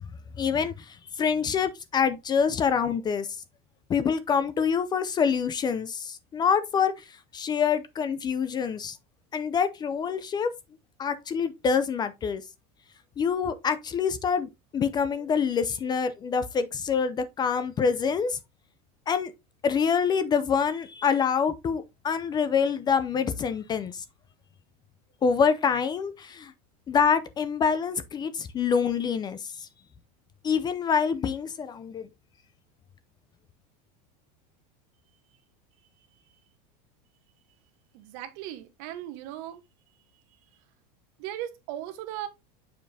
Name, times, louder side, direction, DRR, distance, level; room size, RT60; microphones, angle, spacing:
voice 1, 0.4-3.4 3.9-9.0 9.3-10.5 11.0-12.4 13.2-18.4 19.1-19.3 19.6-24.0 25.2-26.5 26.9-29.7 30.4-32.1, left 6 dB, 20° left, 0.5 m, -26 dB
voice 2, 37.9-39.6 41.2-42.3, right 12 dB, 60° right, 1.2 m, -37 dB
6.9 x 5.1 x 2.7 m
supercardioid pair, 145°, 20 cm